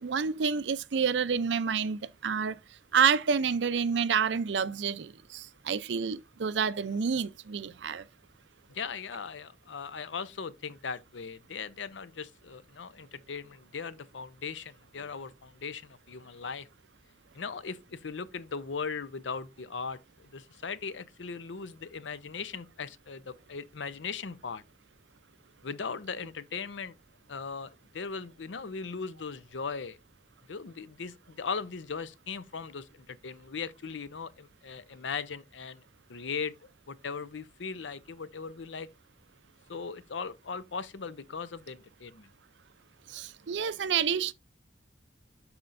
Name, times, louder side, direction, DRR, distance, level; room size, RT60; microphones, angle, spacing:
voice 1, 0.0-2.6 2.9-8.0 43.1-44.3, right 6 dB, 75° right, 0.5 m, -28 dB
voice 2, 8.7-16.7 17.3-24.6 25.6-27.0 27.3-30.0 30.5-35.8 36.1-36.5 36.9-38.9 39.7-42.3, left 5 dB, 85° left, 0.6 m, -38 dB
12.0 x 4.4 x 2.5 m
head